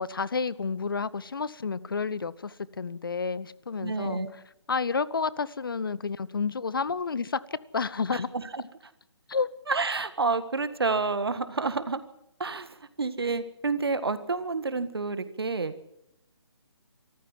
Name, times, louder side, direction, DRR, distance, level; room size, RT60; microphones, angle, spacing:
voice 1, 0.0-4.4 4.7-8.3 9.3-9.5, left 5 dB, 50° left, 19 dB, 0.8 m, -30 dB
voice 2, 3.8-4.3 8.1-8.6 9.7-12.0 12.4-15.7, right 4 dB, 60° right, 12 dB, 1.7 m, -29 dB
24.5 x 14.0 x 7.7 m, 0.83 s
figure-of-eight pair, 145°, 15 cm